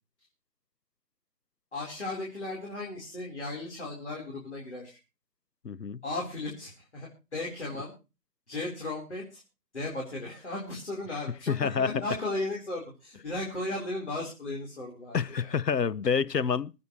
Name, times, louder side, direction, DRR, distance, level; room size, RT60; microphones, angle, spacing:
voice 1, 1.7-5.0 6.0-7.9 8.5-9.4 9.7-15.5, left 2 dB, 45° left, 4.4 m, -36 dB
voice 2, 5.6-6.0 11.5-11.9 15.1-16.7, left 6 dB, 80° left, 0.9 m, -27 dB
25.5 x 9.4 x 3.2 m
figure-of-eight pair, 170°, 49 cm